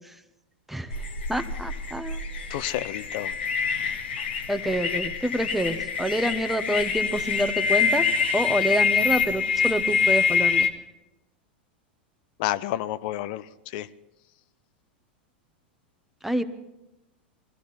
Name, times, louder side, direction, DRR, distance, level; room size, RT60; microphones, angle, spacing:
sound 1, 0.9-10.7, left 5 dB, 80° left, 1.4 m, -25 dB
voice 1, 1.3-2.2 4.5-8.0 8.3-10.7 16.2-16.4, right 1 dB, 5° right, 1.2 m, -27 dB
voice 2, 2.5-3.3 12.4-13.5 13.7-13.9, left 14 dB, 55° left, 0.7 m, -29 dB
22.0 x 14.5 x 4.3 m
hypercardioid pair, 100°, 6 cm